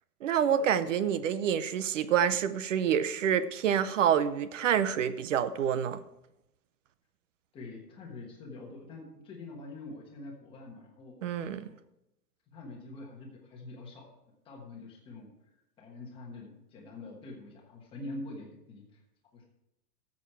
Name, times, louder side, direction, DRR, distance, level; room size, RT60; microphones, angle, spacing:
voice 1, 0.2-6.0 11.2-11.7, right 8 dB, 50° right, 0.7 m, -27 dB
voice 2, 7.5-11.1 11.6-11.8 12.5-14.0 14.4-15.3 15.8-18.8 19.3-19.4, left 2 dB, 10° left, 1.3 m, -45 dB
13.0 x 7.3 x 4.4 m
supercardioid pair, 175°, 48 cm